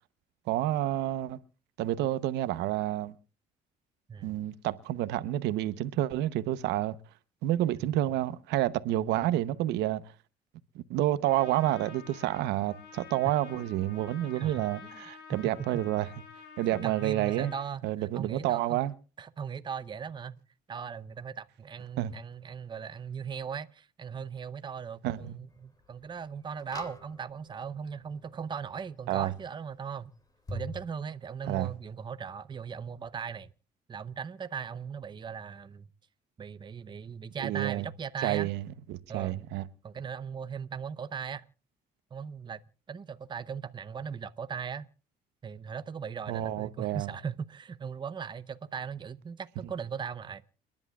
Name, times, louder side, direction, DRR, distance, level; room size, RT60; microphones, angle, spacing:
voice 1, 0.5-1.4 1.8-3.1 4.2-6.9 7.4-10.0 10.7-16.1 16.6-17.5 17.8-18.9 22.0-22.1 25.0-25.3 29.1-29.3 31.5-31.7 37.4-37.8 38.2-38.6 38.9-39.6 46.3-47.1, right 14 dB, 85° right, 0.9 m, -29 dB
Trumpet, 11.2-17.7, left 6 dB, 75° left, 4.5 m, -49 dB
voice 2, 14.4-15.0 15.3-15.9 16.6-18.8 19.2-20.4 20.7-30.1 30.5-33.5 33.9-35.9 36.4-38.5 39.1-39.4 39.8-41.5 42.1-42.6 42.9-44.9 45.4-50.4, right 6 dB, 25° right, 0.7 m, -38 dB
sound 1, 25.5-25.6 26.6-27.6 30.5-30.8, equal, 20° left, 2.4 m, -41 dB
30.0 x 11.0 x 2.4 m
cardioid pair, 110°, 17 cm